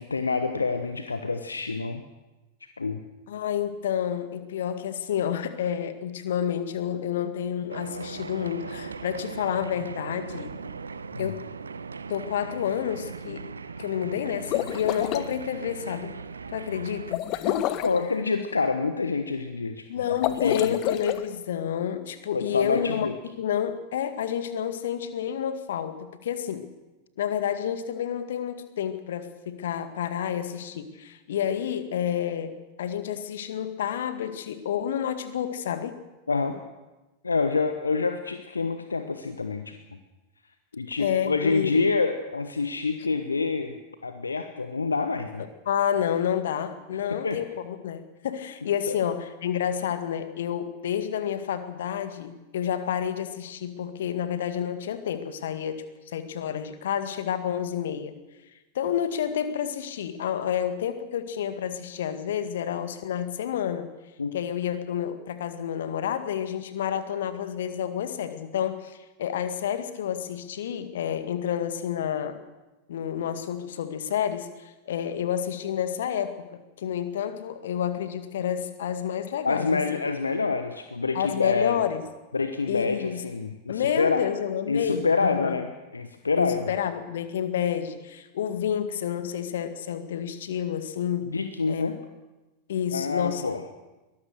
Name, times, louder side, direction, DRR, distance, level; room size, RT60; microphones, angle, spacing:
voice 1, 0.0-2.0 2.8-3.0 11.1-11.3 17.8-19.8 20.2-20.7 22.3-23.2 36.3-36.6 37.2-39.8 40.7-43.8 44.0-45.5 46.9-47.4 48.9-49.0 64.2-64.3 79.4-81.8 82.3-84.2 84.7-86.7 91.2-92.0 92.9-93.6, left 4 dB, 75° left, 8 dB, 1.2 m, -27 dB
voice 2, 3.3-10.6 11.2-11.4 12.1-13.5 13.8-16.1 16.5-17.8 19.9-23.1 23.4-26.7 27.2-32.5 32.8-36.0 41.0-41.8 45.7-55.8 56.1-58.2 58.7-63.9 64.3-72.4 72.9-80.0 81.1-82.0 82.7-83.2 83.7-85.6 86.4-91.3 91.7-91.9 92.7-93.4, left 9 dB, 60° left, 10 dB, 2.0 m, -29 dB
sound 1, 7.7-17.1, right 5 dB, 75° right, 1.0 m, -39 dB
sound 2, 14.3-15.3 17.1-18.0 20.1-21.2, left 14 dB, 40° left, 1.3 m, -29 dB
23.0 x 19.5 x 6.6 m, 1.1 s
figure-of-eight pair, 90°, 0 cm